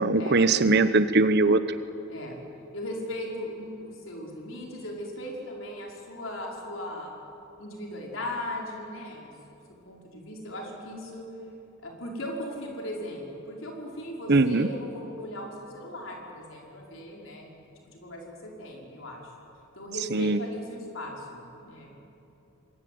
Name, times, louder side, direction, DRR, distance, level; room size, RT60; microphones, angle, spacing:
voice 1, 0.0-1.6 14.3-14.7 20.1-20.4, right 3 dB, 55° right, 12 dB, 1.0 m, -21 dB
voice 2, 2.7-7.1 7.6-9.3 9.9-11.3 11.8-17.6 17.9-19.2 19.7-22.1, left 1 dB, 70° left, -1 dB, 5.5 m, -38 dB
26.0 x 21.5 x 9.5 m, 2.9 s
head